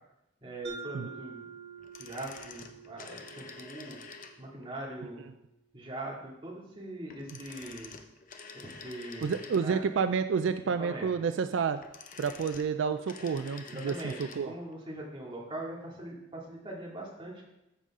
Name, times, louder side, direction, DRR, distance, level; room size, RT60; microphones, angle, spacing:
voice 1, 0.4-1.5 2.0-4.0 4.4-5.3 5.7-8.0 8.5-9.8 10.4-10.5 10.8-11.1 13.7-17.4, right 1 dB, 25° right, -4 dB, 2.3 m, -41 dB
Mallet percussion, 0.6-5.2, right 5 dB, 65° right, 2.0 m, -48 dB
sound 1, 1.8-4.6 7.1-10.0 11.6-14.5 14.7-14.8, left 5 dB, 45° left, 0.8 m, -48 dB
voice 2, 9.2-11.8 12.2-14.5, right 6 dB, 80° right, 10 dB, 0.3 m, -30 dB
14.0 x 5.4 x 3.7 m, 0.90 s
head